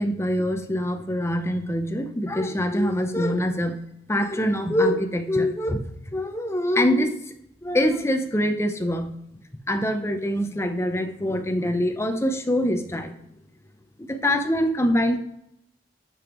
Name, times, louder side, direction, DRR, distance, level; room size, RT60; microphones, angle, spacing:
voice 1, 0.0-3.8 4.1-5.8 6.1-7.2 7.6-9.1 9.7-13.1 14.0-15.2, equal, 15° left, 7 dB, 0.6 m, -24 dB
11.0 x 5.2 x 3.0 m, 0.79 s
head